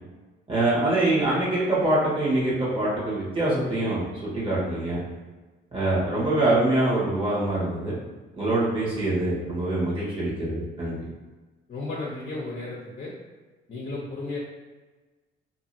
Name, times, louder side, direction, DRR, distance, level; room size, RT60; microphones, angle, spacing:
voice 1, 0.5-5.0 5.7-7.9 8.3-11.0, right 2 dB, 25° right, -8 dB, 1.4 m, -24 dB
voice 2, 11.7-13.1 13.7-14.4, left 2 dB, 45° left, -5 dB, 0.8 m, -34 dB
2.7 x 2.6 x 2.7 m, 1.2 s
cardioid pair, 90°, 20 cm